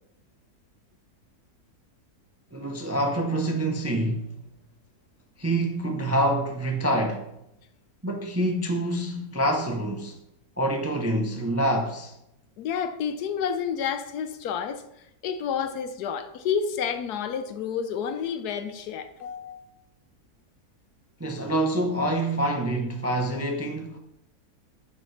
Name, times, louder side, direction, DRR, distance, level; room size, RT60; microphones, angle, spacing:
voice 1, 2.5-4.4 5.4-7.3 8.0-10.2 10.6-12.1 21.2-24.0, right 1 dB, 20° right, 0.4 m, -26 dB
voice 2, 12.6-14.8 15.2-19.7, left 7 dB, 85° left, 1.3 m, -30 dB
9.1 x 6.0 x 3.3 m
omnidirectional pair, 1.6 m